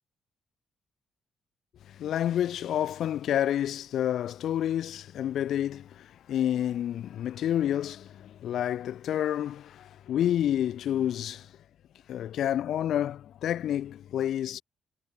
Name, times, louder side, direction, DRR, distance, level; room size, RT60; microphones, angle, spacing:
voice 1, 1.9-11.5 12.1-14.6, left 11 dB, 70° left, 1.5 m, -29 dB
cardioid pair, 90°, 0 cm